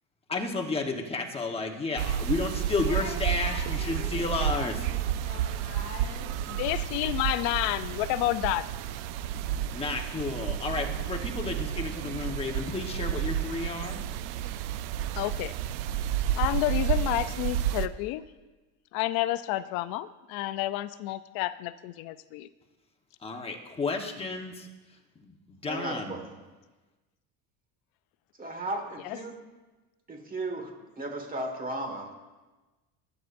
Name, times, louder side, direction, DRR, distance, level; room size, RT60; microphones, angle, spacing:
voice 1, 0.3-4.7 9.4-14.0 23.2-24.7 25.2-25.3 25.6-26.1, left 3 dB, 15° left, 2 dB, 1.2 m, -32 dB
sound 1, 2.0-17.9, right 10 dB, 75° right, 0.6 m, -31 dB
voice 2, 2.8-6.6, left 3 dB, 40° left, -1 dB, 4.3 m, -43 dB
voice 3, 6.5-8.7 15.1-15.5 16.4-18.2 18.9-22.5 29.0-29.2, left 15 dB, 70° left, 14 dB, 0.6 m, -30 dB
voice 4, 25.6-26.3 28.4-29.4 30.1-32.1, right 2 dB, 25° right, 4 dB, 1.7 m, -35 dB
19.5 x 9.5 x 2.6 m, 1.2 s
cardioid pair, 135°, 37 cm